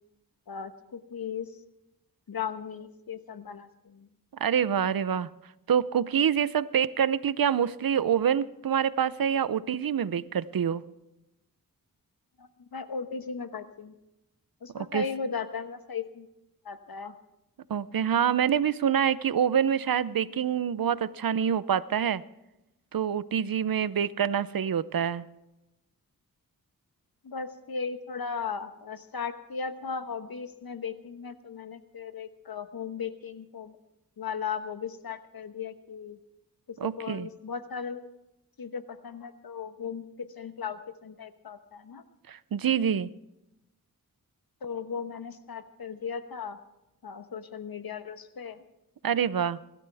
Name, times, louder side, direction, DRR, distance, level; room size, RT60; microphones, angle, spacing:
voice 1, 0.5-1.5 2.3-4.1 12.4-13.9 14.6-16.3 16.6-17.2 27.2-33.8 34.2-36.2 36.8-38.1 38.6-42.0 44.6-46.6 47.0-48.6, left 6 dB, 85° left, 9 dB, 1.2 m, -37 dB
voice 2, 4.4-5.3 5.7-10.8 14.7-15.0 17.7-22.2 22.9-25.2 36.8-37.3 42.3-43.1 49.0-49.6, right 8 dB, 75° right, 16 dB, 0.7 m, -26 dB
24.0 x 13.0 x 3.5 m, 0.93 s
cardioid pair, 45°, 35 cm